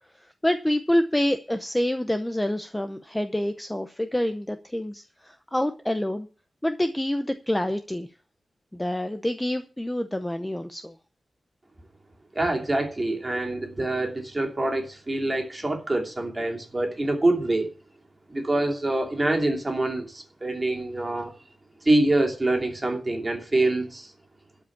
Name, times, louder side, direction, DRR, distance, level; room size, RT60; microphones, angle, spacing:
voice 1, 0.2-6.3 6.6-8.1 8.7-10.9, left 1 dB, 5° left, 8 dB, 0.7 m, -27 dB
voice 2, 12.3-17.7 18.3-21.3 21.8-24.1, right 2 dB, 20° right, 2 dB, 2.8 m, -25 dB
12.5 x 5.2 x 8.5 m, 0.35 s
wide cardioid pair, 175°, 0 cm